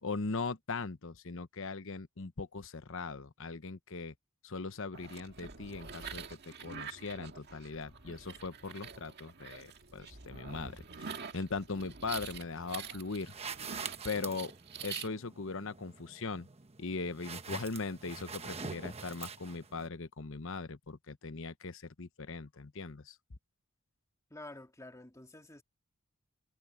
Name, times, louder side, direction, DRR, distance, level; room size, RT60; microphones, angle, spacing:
voice 1, 0.0-4.1 4.4-13.3 14.0-14.5 14.8-16.5 16.8-23.2, left 4 dB, 60° left, 1.0 m, -40 dB
sound 1, 4.9-15.1, right 6 dB, 50° right, 2.0 m, -46 dB
sound 2, 13.2-19.9, right 5 dB, 30° right, 1.1 m, -45 dB
voice 2, 24.3-25.6, left 2 dB, 15° left, 2.0 m, -49 dB
head